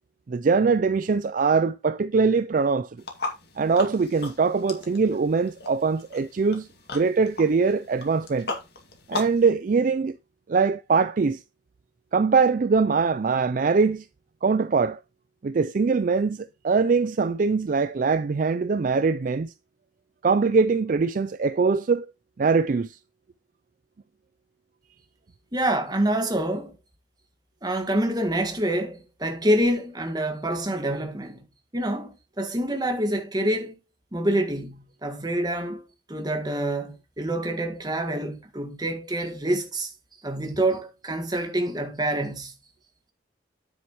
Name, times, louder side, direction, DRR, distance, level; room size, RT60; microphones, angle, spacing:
voice 1, 0.3-2.9 3.6-6.7 6.9-8.5 9.1-10.2 10.5-11.4 12.1-14.1 14.4-15.0 15.4-19.5 20.2-22.1 22.4-23.0, right 4 dB, 45° right, 0.4 m, -22 dB
sound 1, 3.0-9.4, left 3 dB, 60° left, 2.4 m, -37 dB
voice 2, 25.5-26.8 27.6-31.5 31.7-33.7 34.1-39.9 40.2-42.5, right 1 dB, 20° right, 1.7 m, -27 dB
9.8 x 7.9 x 3.0 m
head